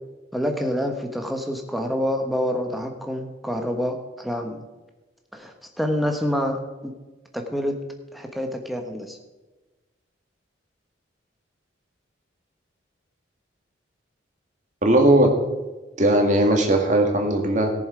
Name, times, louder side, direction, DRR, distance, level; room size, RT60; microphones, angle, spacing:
voice 1, 0.3-4.6 5.3-6.9 7.3-7.7 8.1-9.2, equal, ahead, 3 dB, 1.1 m, -27 dB
voice 2, 14.8-15.3 16.0-17.7, right 1 dB, 40° right, 3 dB, 1.9 m, -18 dB
18.0 x 7.1 x 4.9 m, 1.2 s
head